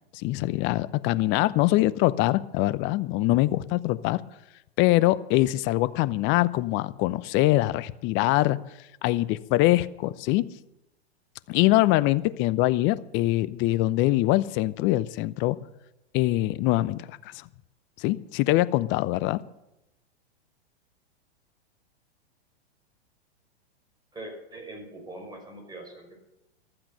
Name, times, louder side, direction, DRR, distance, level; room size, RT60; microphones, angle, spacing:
voice 1, 0.1-4.2 4.8-8.6 9.0-10.5 11.5-15.6 16.1-17.4 18.0-19.4, left 17 dB, 35° left, 16 dB, 0.8 m, -23 dB
voice 2, 24.1-26.2, right 1 dB, 10° right, 2 dB, 6.2 m, -42 dB
15.0 x 13.0 x 6.6 m, 0.89 s
hypercardioid pair, 115°, 33 cm